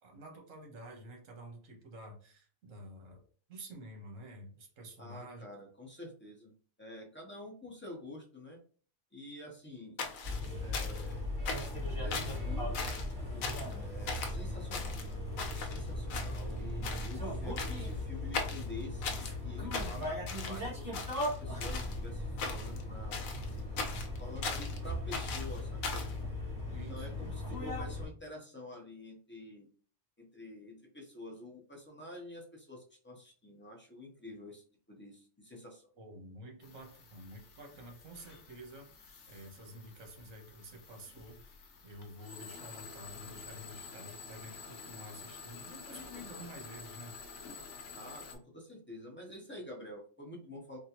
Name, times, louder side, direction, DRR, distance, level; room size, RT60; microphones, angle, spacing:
voice 1, 0.0-3.2 3.5-5.4 26.7-27.3 36.0-41.5 41.8-47.2, right 1 dB, 75° right, 3 dB, 1.3 m, -50 dB
voice 2, 5.0-6.5 6.8-8.6 9.1-10.0 10.6-11.3 12.0-12.9 13.7-23.3 24.2-26.1 26.9-29.7 30.2-35.9 47.9-50.8, left 1 dB, 15° left, 0 dB, 0.5 m, -48 dB
sound 1, 10.0-11.1 11.5-11.8 12.1-12.4 12.7-13.1 13.4-13.8 14.1-14.4 14.7-15.8 16.1-16.6 16.8-17.1 17.6-17.9 18.3-19.3 19.7-20.6 20.9-22.0 22.4-22.8 23.1-24.8 25.1-26.1, left 4 dB, 90° left, 1.1 m, -39 dB
sound 2, 10.2-28.1, left 1 dB, 15° right, 1.7 m, -38 dB
sound 3, 36.6-48.4, left 5 dB, 65° left, 1.0 m, -50 dB
3.5 x 2.4 x 2.8 m, 0.43 s
omnidirectional pair, 1.4 m